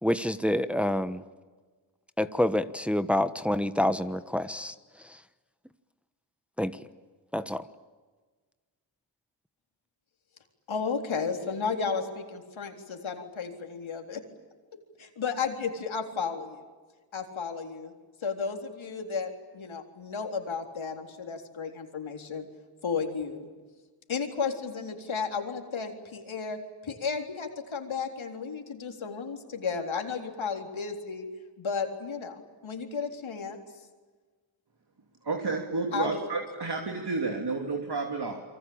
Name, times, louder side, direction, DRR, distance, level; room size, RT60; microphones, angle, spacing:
voice 1, 0.0-1.2 2.2-4.7 6.6-6.7 7.3-7.6, left 1 dB, 5° right, 11 dB, 1.2 m, -27 dB
voice 2, 10.7-14.2 15.0-16.6 17.1-17.9 18.2-22.5 22.8-23.5 24.1-31.3 31.6-33.6 35.9-36.3, left 5 dB, 75° left, 4 dB, 3.9 m, -33 dB
voice 3, 35.2-38.4, right 3 dB, 55° right, 2 dB, 3.3 m, -31 dB
27.5 x 24.0 x 8.8 m, 1.4 s
cardioid pair, 65°, 47 cm